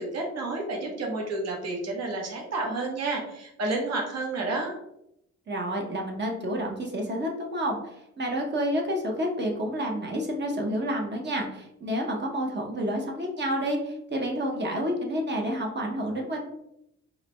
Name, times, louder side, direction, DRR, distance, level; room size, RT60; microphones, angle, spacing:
voice 1, 0.0-4.7, right 2 dB, 60° right, 0 dB, 1.2 m, -30 dB
voice 2, 5.5-16.4, equal, 35° right, 1 dB, 0.9 m, -29 dB
4.8 x 2.2 x 3.1 m, 0.78 s
cardioid pair, 90°, 30 cm